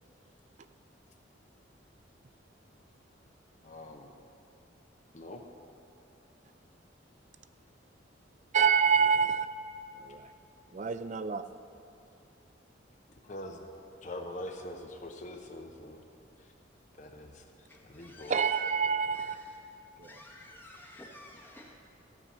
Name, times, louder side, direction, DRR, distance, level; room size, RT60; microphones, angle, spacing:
voice 1, 3.6-4.1 5.1-5.4 13.2-13.6 14.0-16.0 17.0-17.4 17.8-18.4, left 1 dB, 40° left, 3 dB, 0.8 m, -43 dB
voice 2, 8.5-9.5 10.0-10.2 10.7-11.4 18.3-19.4 20.0-20.1, right 6 dB, 40° right, 11 dB, 0.4 m, -26 dB
voice 3, 17.7-18.6 19.1-19.6 20.0-21.8, left 1 dB, 10° left, -2 dB, 1.0 m, -52 dB
15.0 x 5.6 x 7.3 m, 2.7 s
head